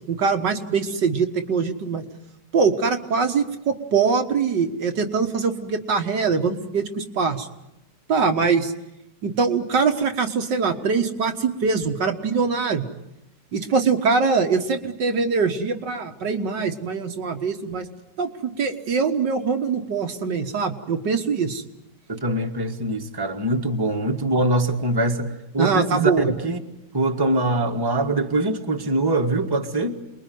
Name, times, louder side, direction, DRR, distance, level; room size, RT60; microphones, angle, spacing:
voice 1, 0.1-2.0 2.5-7.5 8.1-8.7 9.2-12.8 13.5-17.9 18.2-21.6 25.6-26.3, right 5 dB, 75° right, 5 dB, 2.2 m, -23 dB
voice 2, 22.1-26.6 26.9-30.0, right 2 dB, 15° right, 3 dB, 1.7 m, -23 dB
28.5 x 21.5 x 9.4 m, 0.88 s
omnidirectional pair, 1.9 m